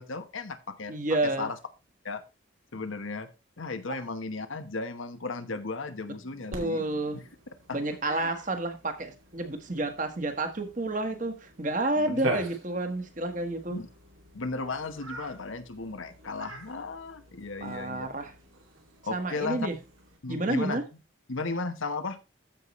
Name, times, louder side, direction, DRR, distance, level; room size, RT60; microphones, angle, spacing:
voice 1, 0.0-1.0 1.4-1.6 2.0-2.2 2.7-3.3 3.6-6.9 7.1-7.2 7.7-7.8 8.0-8.3 12.0-12.3 13.7-13.9 14.3-18.1 19.0-19.7 20.2-20.8 21.3-22.2, left 3 dB, 80° left, 1.1 m, -35 dB
voice 2, 0.9-1.5 6.5-7.2 7.7-13.8 17.6-18.3 19.1-19.8 20.3-20.8, right 2 dB, 40° right, 1.4 m, -30 dB
Cat, 6.5-20.2, right 2 dB, 85° right, 2.6 m, -43 dB
14.5 x 5.6 x 3.1 m
head